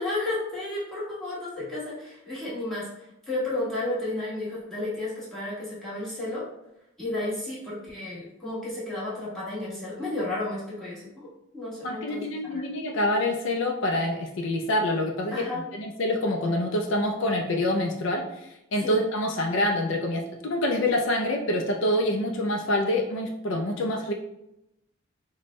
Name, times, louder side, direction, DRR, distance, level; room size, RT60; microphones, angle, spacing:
voice 1, 0.0-2.9 3.3-6.4 7.0-11.3 11.5-12.6 15.3-15.6 18.8-19.0, left 2 dB, ahead, -10 dB, 1.2 m, -32 dB
voice 2, 11.8-18.2 18.7-24.1, left 1 dB, 65° left, 2 dB, 0.4 m, -26 dB
4.3 x 2.2 x 3.0 m, 0.86 s
head